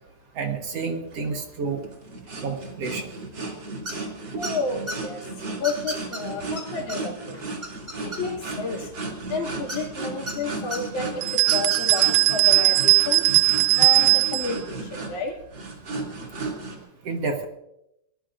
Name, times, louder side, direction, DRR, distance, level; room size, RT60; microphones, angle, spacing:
voice 1, 0.4-1.8 2.4-3.1 17.0-17.5, right 4 dB, 60° right, 4 dB, 2.2 m, -29 dB
sound 1, 1.1-16.8, right 3 dB, 40° right, 3.1 m, -35 dB
sound 2, 3.9-4.1 4.4-5.0 5.6-6.2 6.6-6.7 6.9-7.0 7.3-8.5 9.7-10.3 10.7-10.8 11.4-12.0, equal, 10° right, 4.3 m, -33 dB
voice 2, 4.3-5.2 5.6-7.4 8.0-8.9 9.3-15.4, left 4 dB, 75° left, -1 dB, 3.6 m, -31 dB
sound 3, 11.2-14.5, right 18 dB, 85° right, 2.2 m, -19 dB
22.0 x 19.5 x 2.5 m, 0.82 s
omnidirectional pair, 3.5 m